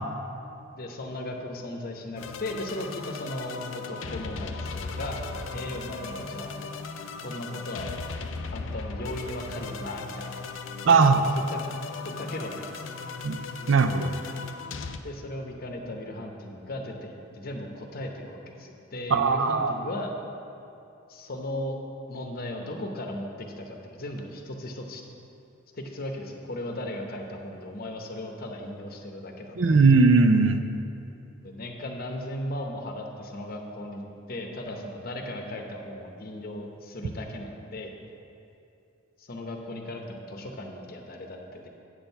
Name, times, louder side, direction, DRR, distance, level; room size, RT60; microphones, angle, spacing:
voice 1, 0.7-5.2 5.5-6.6 7.2-7.9 8.5-10.5 10.9-11.6 12.0-13.0 15.0-20.1 21.1-21.8 22.1-25.0 25.7-29.6 31.4-34.0 34.3-37.9 39.2-41.7, left 1 dB, 50° left, 3 dB, 0.8 m, -37 dB
sound 1, 2.2-15.0, left 4 dB, 70° left, 0.5 m, -37 dB
voice 2, 10.9-11.2 13.2-13.4 13.7-14.1 19.1-19.7 29.6-30.6, right 4 dB, 65° right, 8 dB, 0.5 m, -19 dB
8.9 x 4.5 x 6.7 m, 2.7 s
head